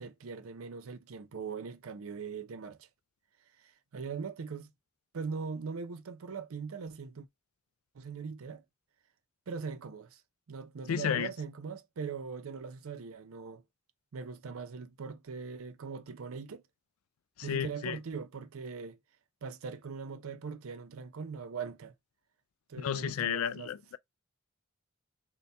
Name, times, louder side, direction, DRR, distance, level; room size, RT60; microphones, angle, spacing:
voice 1, 0.0-2.9 3.6-4.7 5.1-7.3 7.9-8.6 9.5-10.2 10.5-13.6 14.1-16.6 17.4-19.0 19.4-21.9 22.7-23.7, right 5 dB, 75° right, 0.5 m, -41 dB
voice 2, 10.9-11.3 17.4-18.0 22.8-24.0, left 8 dB, 80° left, 0.3 m, -32 dB
4.1 x 2.2 x 3.3 m
head